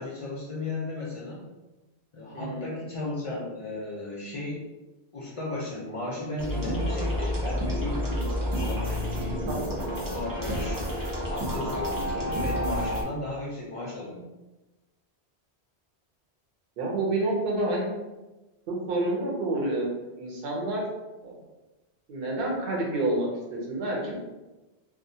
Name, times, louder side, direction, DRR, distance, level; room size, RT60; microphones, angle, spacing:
voice 1, 0.0-1.4 2.1-4.7 5.1-8.3 8.6-9.4 10.1-14.2, left 2 dB, 50° left, -5 dB, 0.4 m, -35 dB
voice 2, 2.3-2.6 9.5-9.6 16.8-17.9 18.7-20.8 21.2-21.3 22.1-24.1, right 2 dB, 60° right, -2 dB, 0.8 m, -28 dB
sound 1, 6.4-13.0, equal, 30° right, 0.4 m, -29 dB
2.4 x 2.1 x 2.7 m, 1.1 s
omnidirectional pair, 1.1 m